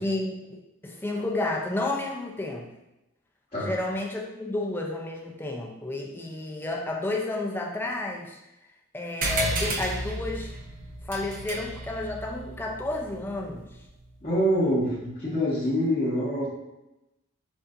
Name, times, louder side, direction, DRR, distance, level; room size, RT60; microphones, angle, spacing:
voice 1, 0.0-2.7 3.6-8.4 8.9-10.5 11.0-13.7, left 2 dB, 10° left, 0 dB, 0.4 m, -31 dB
sound 1, 9.2-14.1, right 2 dB, 40° right, 0.5 m, -33 dB
voice 2, 14.2-16.5, equal, 30° left, -12 dB, 1.4 m, -25 dB
6.8 x 2.5 x 2.5 m, 0.95 s
head